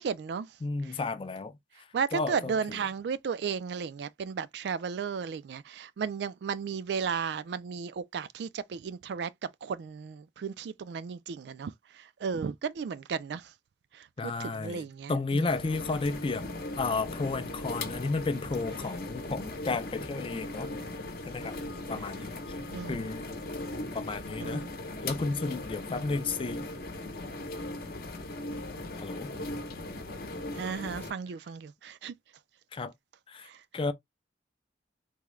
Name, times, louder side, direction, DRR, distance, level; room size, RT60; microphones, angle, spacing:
voice 1, 0.0-0.5 1.9-9.3 9.6-13.5 13.9-15.5 22.7-23.1 24.4-24.7 30.5-32.1 33.4-33.6, right 6 dB, 65° right, 0.3 m, -34 dB
voice 2, 0.6-1.6 2.1-2.8 14.2-16.5 16.8-20.7 21.3-21.6 21.9-22.5 22.9-23.3 23.9-24.6 25.0-26.7 28.9-29.3 32.7-32.9 33.3-33.5 33.7-33.9, left 3 dB, 30° left, 0.4 m, -32 dB
sound 1, 15.5-31.1, left 2 dB, 55° left, 0.8 m, -38 dB
3.5 x 2.1 x 3.0 m
head